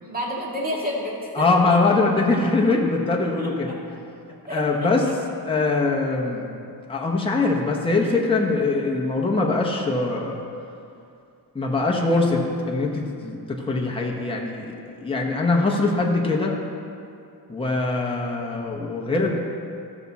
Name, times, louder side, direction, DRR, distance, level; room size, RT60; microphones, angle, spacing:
voice 1, 0.0-1.4 3.4-3.5 4.5-4.9, left 1 dB, 20° right, -4 dB, 2.1 m, -29 dB
voice 2, 1.3-3.8 4.5-5.0 5.4-6.5 6.9-10.4 11.5-16.6 17.5-19.4, left 3 dB, 15° left, -2 dB, 1.1 m, -22 dB
14.0 x 6.0 x 4.1 m, 2.5 s
cardioid pair, 115°, 41 cm